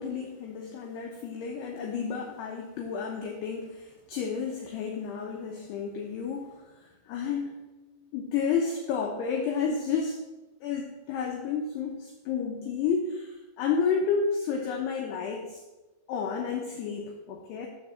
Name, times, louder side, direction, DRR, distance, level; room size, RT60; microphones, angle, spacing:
voice 1, 0.0-7.5 8.0-10.2 10.6-15.6 16.1-17.7, left 6 dB, 85° left, 1 dB, 2.4 m, -31 dB
12.0 x 4.2 x 7.3 m, 1.1 s
omnidirectional pair, 6.0 m